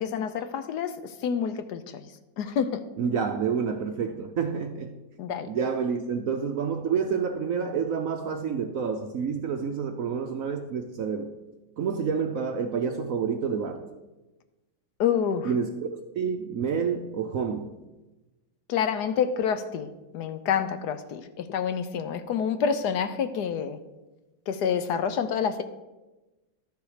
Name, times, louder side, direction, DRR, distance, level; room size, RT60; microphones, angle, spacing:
voice 1, 0.0-2.1 2.4-2.8 5.2-5.5 15.0-15.5 18.7-23.8 24.5-25.6, left 7 dB, 70° left, 10 dB, 1.1 m, -28 dB
voice 2, 3.0-4.9 5.5-11.3 11.8-13.9 15.4-15.7 16.2-17.7, right 6 dB, 65° right, 6 dB, 0.9 m, -28 dB
12.5 x 7.0 x 4.9 m, 1.1 s
omnidirectional pair, 2.0 m